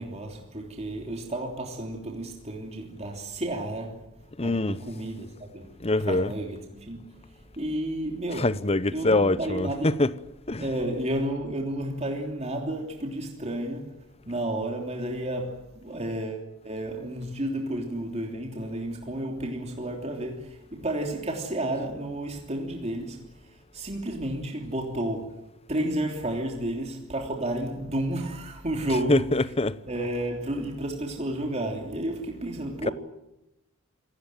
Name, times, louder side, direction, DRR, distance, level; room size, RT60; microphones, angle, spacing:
voice 1, 0.0-5.8 6.1-8.5 8.9-10.0 10.6-29.4 29.9-32.9, right 1 dB, 30° right, 3.2 m, -32 dB
voice 2, 4.4-4.8 5.8-6.3 8.4-10.1 10.5-10.6 29.1-29.8, left 2 dB, 30° left, 0.9 m, -24 dB
27.5 x 17.5 x 9.2 m
head